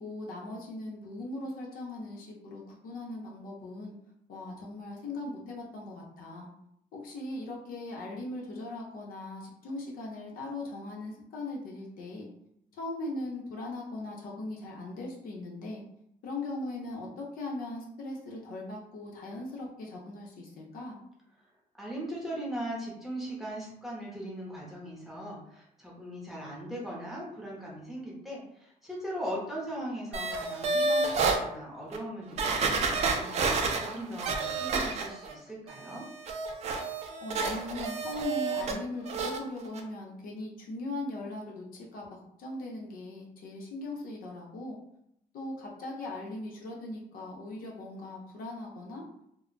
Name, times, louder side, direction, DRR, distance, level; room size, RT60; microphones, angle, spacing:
voice 1, 0.0-3.9 4.3-6.5 6.9-12.3 12.8-15.8 16.2-21.0 37.2-44.8 45.3-49.0, left 2 dB, 70° left, -2 dB, 0.8 m, -39 dB
voice 2, 21.8-36.1, equal, ahead, -5 dB, 0.8 m, -39 dB
sound 1, 30.1-31.4 31.9-32.0 32.4-35.3 35.7-38.8 39.0-39.4 39.7-39.8, right 4 dB, 45° right, 0.4 m, -30 dB
2.2 x 2.2 x 3.8 m, 0.75 s
cardioid pair, 140°, 15 cm